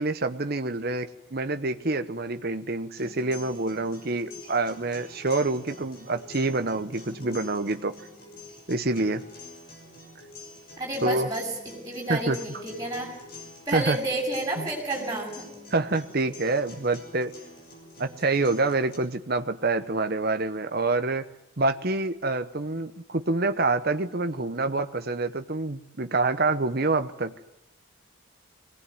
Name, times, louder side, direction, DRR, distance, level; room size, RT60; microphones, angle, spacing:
voice 1, 0.0-7.9 8.7-9.2 11.0-11.3 12.1-12.4 13.7-14.0 14.6-14.7 15.7-17.3 18.0-21.2 21.6-27.3, right 3 dB, 45° right, 8 dB, 1.0 m, -27 dB
sound 1, 3.0-19.0, left 2 dB, 45° left, 6.5 m, -46 dB
voice 2, 10.8-13.1 13.7-15.5, right 2 dB, 15° right, -3 dB, 7.4 m, -30 dB
22.0 x 19.0 x 9.3 m, 0.83 s
head